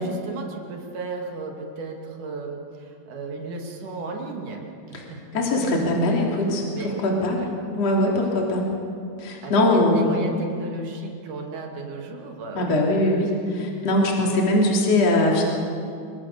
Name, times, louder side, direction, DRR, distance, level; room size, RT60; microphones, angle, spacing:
voice 1, 0.0-5.7 6.7-7.1 7.4-7.6 9.4-12.8, right 3 dB, 60° right, 1 dB, 4.1 m, -35 dB
voice 2, 5.3-7.4 7.7-8.7 9.2-10.1 12.6-15.4, left 1 dB, 45° left, -2 dB, 4.4 m, -21 dB
27.0 x 24.5 x 6.9 m, 2.5 s
omnidirectional pair, 4.2 m